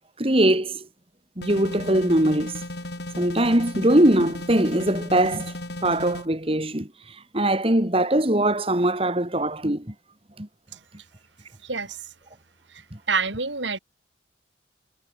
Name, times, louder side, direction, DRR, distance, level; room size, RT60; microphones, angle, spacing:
voice 1, 0.2-0.8 1.4-2.6 3.2-5.5 5.8-9.9 10.4-10.5, right 1 dB, 30° right, 2.3 m, -21 dB
sound 1, 1.4-6.3, left 1 dB, 65° left, 3.6 m, -35 dB
voice 2, 11.6-12.1 12.7-13.8, right 5 dB, 75° right, 5.4 m, -28 dB
head